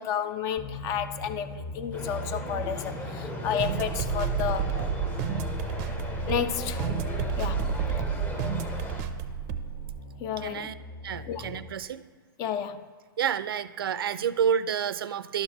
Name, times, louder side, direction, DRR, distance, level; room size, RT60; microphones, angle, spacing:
voice 1, 0.0-4.8 6.3-6.8 7.4-7.7 10.2-10.7 11.3-11.4 12.4-12.9, left 8 dB, 30° left, 0.4 m, -31 dB
sound 1, 0.6-11.8, left 2 dB, 50° left, 1.6 m, -39 dB
sound 2, 1.9-9.0, left 1 dB, 15° left, 0.8 m, -37 dB
sound 3, 3.6-9.9, right 8 dB, 35° right, 0.5 m, -31 dB
voice 2, 10.4-10.7 11.0-12.0 13.2-15.4, right 8 dB, 90° right, 0.4 m, -29 dB
11.5 x 6.7 x 2.9 m
hypercardioid pair, 145°, 12 cm